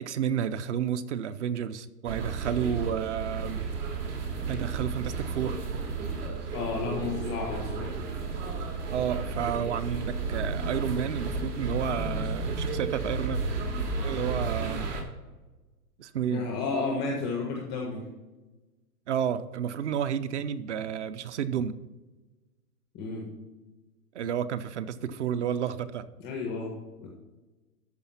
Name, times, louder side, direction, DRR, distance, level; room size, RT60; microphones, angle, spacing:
voice 1, 0.0-3.6 4.5-5.6 8.9-13.4 14.0-14.9 16.0-16.5 19.1-21.7 24.1-26.1, right 8 dB, 50° right, 0.6 m, -31 dB
sound 1, 2.1-15.0, right 3 dB, 75° right, 3.1 m, -32 dB
voice 2, 6.5-7.9 16.3-18.0 22.9-23.2 26.2-27.1, left 4 dB, 5° left, 0.4 m, -32 dB
13.0 x 4.8 x 5.7 m
hypercardioid pair, 150°, 47 cm